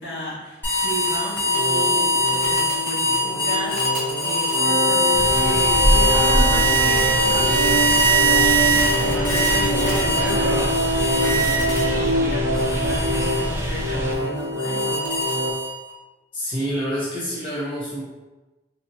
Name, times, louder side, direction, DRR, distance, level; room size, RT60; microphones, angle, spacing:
voice 1, 0.0-14.9, right 1 dB, 65° left, -9 dB, 1.4 m, -34 dB
sound 1, 0.6-12.1 12.5-15.9, right 1 dB, 10° left, 1.0 m, -22 dB
sound 2, 1.5-15.5, equal, 70° right, 0.5 m, -25 dB
sound 3, 5.1-14.1, equal, 15° right, 0.3 m, -25 dB
voice 2, 16.3-18.0, equal, 30° left, -8 dB, 0.6 m, -27 dB
4.1 x 2.2 x 2.6 m, 1.1 s
head